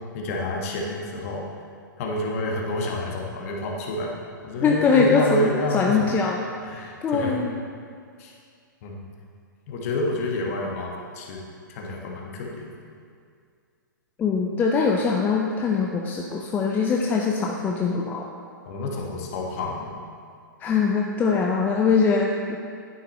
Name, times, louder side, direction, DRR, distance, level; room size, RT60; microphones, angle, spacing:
voice 1, 0.1-1.4 2.0-4.1 4.4-6.1 6.6-7.4 8.2-8.3 8.8-9.0 9.7-10.9 11.1-11.4 11.7-12.7 18.6-19.9, left 1 dB, 45° left, -1 dB, 1.7 m, -29 dB
voice 2, 4.6-6.4 6.7-7.6 14.2-18.3 20.6-22.6, left 5 dB, 15° left, -1 dB, 0.6 m, -22 dB
10.5 x 9.2 x 3.2 m, 2.2 s
figure-of-eight pair, 115°, 11 cm